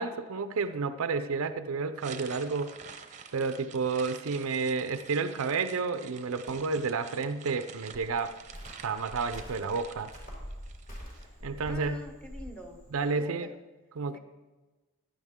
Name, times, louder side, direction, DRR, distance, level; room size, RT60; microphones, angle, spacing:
voice 1, 0.0-2.8 3.3-8.4 8.8-10.1 11.4-12.0 12.9-13.5 14.0-14.2, right 4 dB, 65° right, 11 dB, 0.5 m, -31 dB
sound 1, 2.0-11.3, right 6 dB, 35° right, 0.7 m, -48 dB
Cricket, 7.9-13.1, equal, 35° left, 3.5 m, -45 dB
voice 2, 11.6-12.8 13.1-13.5 14.1-14.2, equal, 5° left, 4 dB, 1.0 m, -45 dB
15.0 x 10.0 x 3.6 m, 1.2 s
head